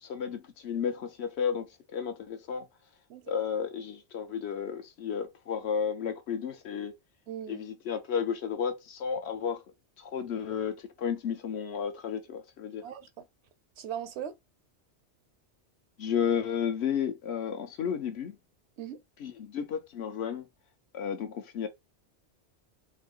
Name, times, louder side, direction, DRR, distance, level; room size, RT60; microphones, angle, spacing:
voice 1, 0.0-2.7 3.3-6.9 7.5-9.6 10.0-12.9 16.0-18.4 19.2-20.5 20.9-21.7, left 7 dB, 70° left, 1.0 m, -32 dB
voice 2, 7.3-7.7 12.8-13.2 13.8-14.4 18.8-19.0, right 9 dB, 75° right, 0.9 m, -39 dB
3.6 x 2.6 x 3.8 m
omnidirectional pair, 1.2 m